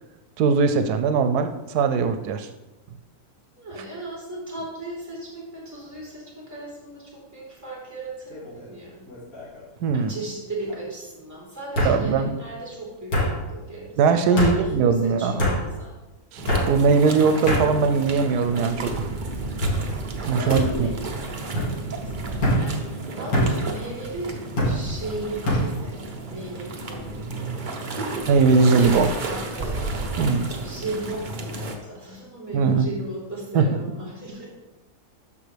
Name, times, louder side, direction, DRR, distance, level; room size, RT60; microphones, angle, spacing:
voice 1, 0.4-2.5 9.8-10.1 11.8-12.4 14.0-15.3 16.3-19.1 20.3-20.9 28.3-29.1 30.2-30.5 32.5-32.9 33.5-33.6, right 5 dB, 90° right, 8 dB, 1.1 m, -20 dB
voice 2, 3.6-9.1 9.9-15.9 20.4-24.3 24.6-28.2 28.7-28.8 29.3-29.9 30.5-34.5, right 2 dB, 10° right, -6 dB, 3.4 m, -36 dB
sound 1, 8.3-8.7 9.1-9.6 10.7-10.8 11.7-12.0 13.1-13.3 14.4-14.5 15.4-15.6 16.5-16.7 17.5-17.6 18.4-18.8 19.6-19.8 20.5-20.6 21.5-21.7 22.4-22.6 23.3-23.5 24.6-24.8 25.4-25.6, equal, 70° left, 2.6 m, -23 dB
sound 2, 16.4-31.8, right 2 dB, 40° right, 0.9 m, -32 dB
13.0 x 5.3 x 3.3 m, 1.1 s
omnidirectional pair, 1.6 m